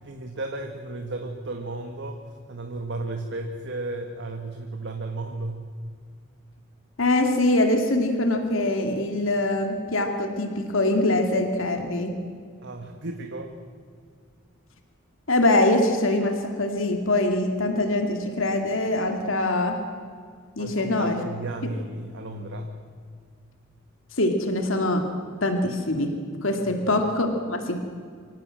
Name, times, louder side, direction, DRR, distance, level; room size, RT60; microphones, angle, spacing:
voice 1, 0.0-5.6 12.6-13.5 20.6-22.7 26.5-26.8, right 2 dB, 60° right, 4 dB, 1.6 m, -34 dB
voice 2, 7.0-12.1 15.3-19.8 20.6-21.2 24.2-25.0 25.4-26.1 26.4-27.8, left 2 dB, 70° left, 5 dB, 2.4 m, -23 dB
25.5 x 17.5 x 7.7 m, 2.1 s
head